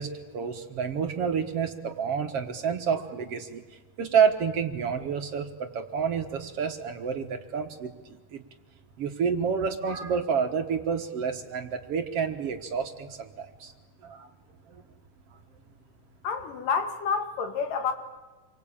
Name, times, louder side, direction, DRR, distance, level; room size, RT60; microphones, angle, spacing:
voice 1, 0.0-8.4 9.0-13.7 14.0-14.3 14.7-14.8, right 6 dB, 55° right, 6 dB, 2.1 m, -29 dB
voice 2, 16.2-17.9, left 5 dB, 85° left, 7 dB, 3.7 m, -28 dB
27.5 x 23.5 x 8.7 m, 1.2 s
omnidirectional pair, 3.7 m